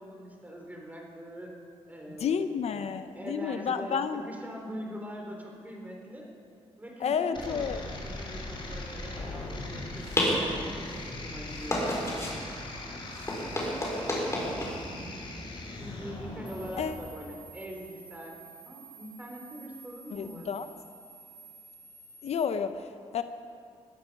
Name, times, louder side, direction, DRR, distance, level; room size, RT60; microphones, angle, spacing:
voice 1, 0.0-1.5 1.9-2.9 3.2-6.3 6.8-11.9 15.8-18.4 18.7-20.5, equal, 15° right, 0 dB, 3.6 m, -43 dB
voice 2, 2.2-4.2 7.0-7.8 16.8-17.0 20.1-20.7 22.2-23.2, left 6 dB, 65° left, 10 dB, 0.7 m, -31 dB
sound 1, 7.3-16.8, left 2 dB, 45° left, 3.5 m, -41 dB
sound 2, 9.4-17.0, left 1 dB, 25° left, 4.8 m, -33 dB
sound 3, 16.5-22.5, right 4 dB, 45° right, 2.6 m, -51 dB
20.0 x 12.5 x 5.4 m, 2.4 s
cardioid pair, 85°, 12 cm